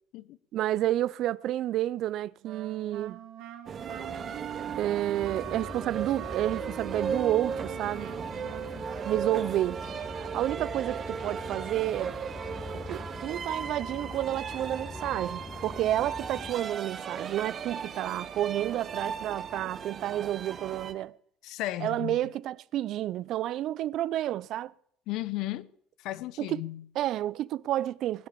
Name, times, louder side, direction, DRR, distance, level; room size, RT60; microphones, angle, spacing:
voice 1, 0.5-3.2 4.8-8.1 9.0-9.8 10.1-12.2 12.9-21.1 21.8-24.7 26.4-26.6 27.0-28.3, right 13 dB, 65° right, 0.5 m, -30 dB
Wind instrument woodwind instrument, 2.4-9.7, right 11 dB, 85° right, 2.6 m, -42 dB
sound 1, 3.7-20.9, right 6 dB, 40° right, 1.8 m, -37 dB
sound 2, 5.2-16.5, left 4 dB, 20° left, 0.5 m, -44 dB
voice 2, 21.4-22.2 25.1-25.7 26.0-26.8, left 16 dB, 75° left, 0.9 m, -34 dB
20.5 x 10.0 x 6.8 m
cardioid pair, 120°, 0 cm